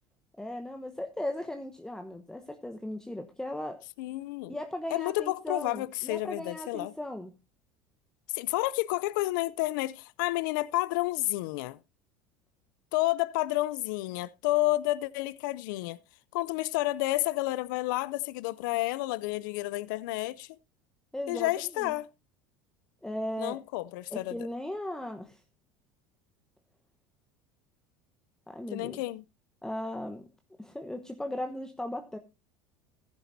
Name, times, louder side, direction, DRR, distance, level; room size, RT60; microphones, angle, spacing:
voice 1, 0.4-3.8 4.5-7.3 21.1-21.5 21.8-21.9 23.0-23.6 24.1-25.4 28.5-29.0 29.6-30.3 30.6-32.2, left 1 dB, 5° left, 1.0 m, -37 dB
voice 2, 4.0-4.5 4.9-6.9 8.3-11.8 12.9-16.0 16.3-20.6 21.3-22.1 23.4-24.4 28.7-29.2, left 18 dB, 75° left, 0.5 m, -30 dB
14.5 x 10.5 x 2.7 m
supercardioid pair, 95°, 11 cm